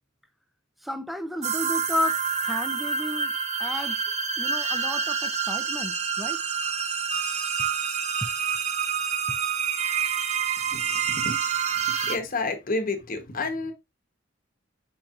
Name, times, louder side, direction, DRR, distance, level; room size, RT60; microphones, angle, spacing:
voice 1, 0.8-3.3 3.6-4.0 4.4-6.4 8.2-8.3, left 1 dB, ahead, 0.5 m, -32 dB
sound 1, 1.4-12.2, right 6 dB, 35° right, 0.8 m, -27 dB
voice 2, 10.7-11.4 12.1-13.7, left 3 dB, 45° left, 1.0 m, -30 dB
4.6 x 4.4 x 2.4 m
head